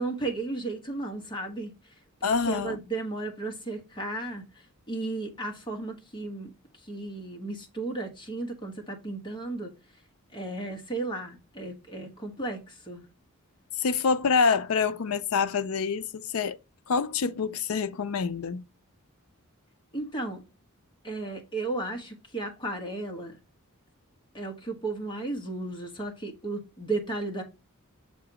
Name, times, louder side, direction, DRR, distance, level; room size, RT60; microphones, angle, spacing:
voice 1, 0.0-1.7 2.2-4.5 4.9-6.5 6.9-9.7 10.3-13.0 19.9-20.4 21.0-23.4 24.3-27.4, right 2 dB, 20° left, 1.4 m, -34 dB
voice 2, 2.2-2.8 13.8-16.6 16.9-18.6, left 5 dB, 75° left, 0.5 m, -26 dB
6.8 x 2.9 x 4.9 m
head